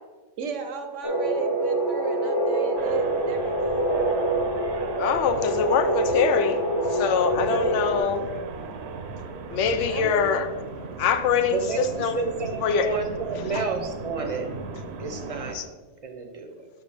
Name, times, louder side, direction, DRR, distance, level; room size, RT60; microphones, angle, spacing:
voice 1, 0.4-4.0 7.5-7.7 9.9-10.2, right 6 dB, 90° right, 6 dB, 1.1 m, -33 dB
sound 1, 1.0-8.0, right 1 dB, 30° left, 0.5 m, -26 dB
sound 2, 2.8-15.5, right 4 dB, 65° right, 0.9 m, -37 dB
voice 2, 5.0-6.6 6.9-8.2 9.5-10.5 11.0-12.2 12.6-13.0 13.5-13.6 15.5-15.6, left 6 dB, 90° left, 9 dB, 0.9 m, -24 dB
voice 3, 11.5-14.5 15.0-15.6 16.0-16.6, right 4 dB, 40° right, 4 dB, 0.6 m, -30 dB
6.6 x 5.8 x 3.3 m, 1.4 s
omnidirectional pair, 1.2 m